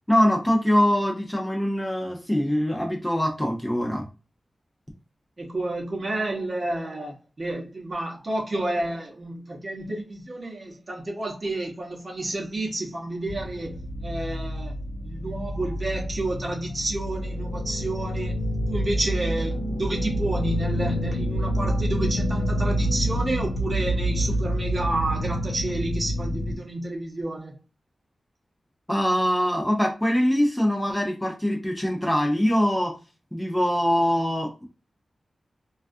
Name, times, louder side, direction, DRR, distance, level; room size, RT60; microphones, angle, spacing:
voice 1, 0.1-4.1 28.9-32.9 33.3-34.6, equal, 10° left, 0.4 m, -23 dB
voice 2, 5.4-13.7 14.0-14.7 15.0-18.4 18.7-27.6, right 2 dB, 40° right, 0.7 m, -30 dB
sound 1, 13.3-26.5, equal, 85° left, 0.9 m, -27 dB
2.3 x 2.3 x 2.5 m
wide cardioid pair, 105°, 0 cm